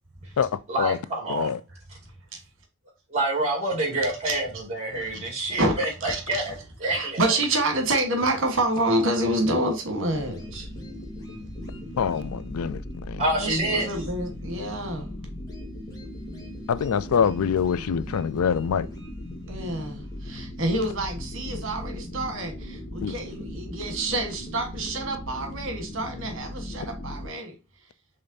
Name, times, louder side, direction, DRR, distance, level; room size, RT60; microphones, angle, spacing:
voice 1, 0.7-1.5 3.1-6.5 6.8-7.2 13.2-13.9, right 1 dB, 30° right, 2.1 m, -27 dB
voice 2, 3.9-4.4 5.0-5.3 5.6-5.7 6.0-6.4 6.8-10.7 13.4-15.1 19.5-27.5, right 1 dB, 60° right, 1.3 m, -28 dB
sound 1, 10.1-27.3, left 1 dB, 15° left, 1.1 m, -38 dB
voice 3, 12.0-13.2 16.7-18.9 23.0-23.1, left 7 dB, 85° left, 0.4 m, -25 dB
5.1 x 3.3 x 2.6 m
head